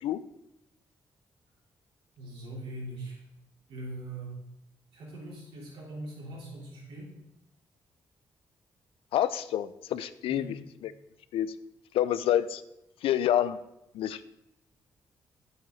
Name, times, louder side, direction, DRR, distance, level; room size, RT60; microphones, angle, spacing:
voice 1, 2.2-3.2 3.7-4.4 4.9-7.1 10.3-10.5, right 2 dB, 75° right, -5 dB, 3.7 m, -41 dB
voice 2, 9.1-10.5 11.3-11.5 11.9-12.6 13.0-13.6 13.9-14.2, left 11 dB, 75° left, 15 dB, 0.4 m, -27 dB
9.4 x 7.9 x 4.0 m, 0.87 s
hypercardioid pair, 45°, 10 cm